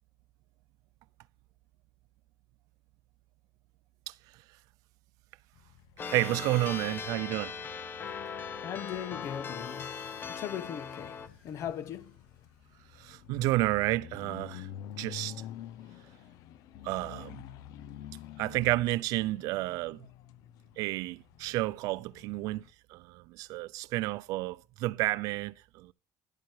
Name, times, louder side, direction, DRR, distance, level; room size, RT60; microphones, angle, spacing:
sound 1, 5.5-22.7, left 11 dB, 65° left, 0.8 m, -49 dB
sound 2, 6.0-8.5 9.1-12.9, left 5 dB, 85° left, 6.5 m, -55 dB
sound 3, 6.0-11.3, left 6 dB, 30° left, 1.0 m, -39 dB
voice 1, 6.1-7.5 13.0-14.7 15.0-15.3 16.8-17.4 18.4-20.1 20.8-22.6 22.9-25.9, right 18 dB, 70° right, 0.5 m, -31 dB
voice 2, 8.6-12.2, left 9 dB, 50° left, 1.2 m, -39 dB
11.5 x 8.8 x 4.8 m
cardioid pair, 135°, 6 cm